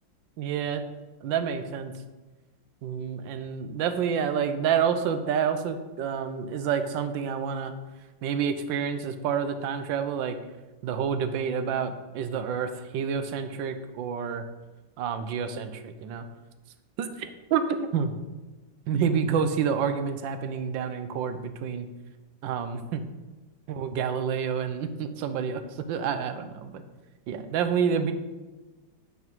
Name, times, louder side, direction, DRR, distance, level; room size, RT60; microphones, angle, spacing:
voice 1, 0.4-0.8 1.2-1.9 2.8-7.7 8.2-10.4 10.8-14.4 15.0-16.2 17.0-18.1 18.9-21.9 22.4-23.0 23.7-26.8 27.3-28.1, right 7 dB, 75° right, 9 dB, 1.4 m, -28 dB
8.9 x 5.7 x 4.6 m, 1.2 s
omnidirectional pair, 2.1 m